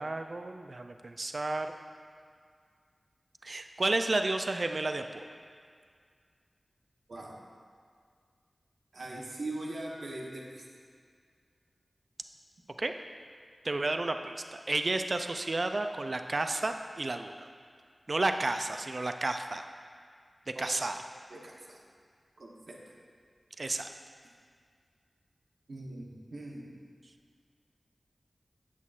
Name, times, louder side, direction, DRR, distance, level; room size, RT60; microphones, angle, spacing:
voice 1, 0.0-1.7 3.4-5.2 12.8-12.9 13.6-17.5 18.1-19.7 20.6-21.0 23.6-23.9, right 2 dB, 55° right, 7 dB, 0.3 m, -32 dB
voice 2, 8.9-10.6 20.5-20.7 21.3-21.8 22.4-22.8 25.7-26.7, right 2 dB, 80° right, -2 dB, 0.9 m, -41 dB
8.3 x 7.2 x 2.4 m, 2.1 s
cardioid pair, 50°, 0 cm